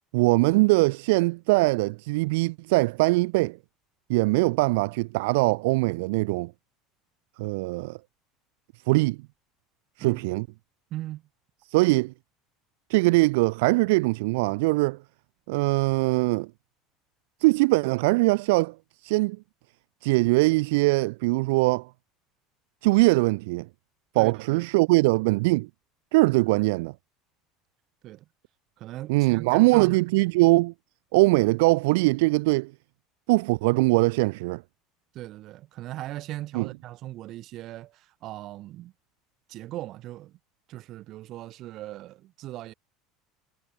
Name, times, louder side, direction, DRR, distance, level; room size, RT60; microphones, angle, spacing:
voice 1, 0.1-3.6 4.1-6.5 7.4-8.0 8.9-9.2 10.0-10.5 11.7-12.1 12.9-15.0 15.5-16.5 17.4-18.7 19.0-19.4 20.0-21.9 22.8-23.7 24.1-25.7 26.1-26.9 29.1-30.7 31.1-32.7 33.3-34.6 36.5-36.7, right 24 dB, 70° right, 0.4 m, -22 dB
voice 2, 10.9-11.2 24.2-24.7 28.0-28.3 28.8-30.0 35.1-38.9 39.5-40.4 40.7-42.7, right 15 dB, 55° right, 1.4 m, -39 dB
hypercardioid pair, 70°, 0 cm